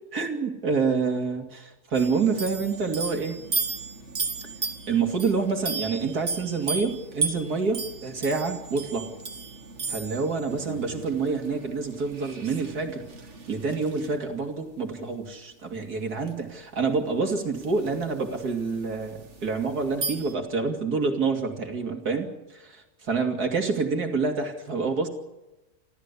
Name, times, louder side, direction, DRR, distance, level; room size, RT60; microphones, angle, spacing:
voice 1, 0.1-3.4 4.9-9.1 9.9-13.0 13.5-25.1, right 4 dB, 70° right, 4 dB, 3.2 m, -27 dB
sound 1, 1.9-14.2 16.3-16.4 17.5-20.3, right 4 dB, 45° right, 2.2 m, -35 dB
27.5 x 14.0 x 8.4 m, 1.0 s
omnidirectional pair, 1.7 m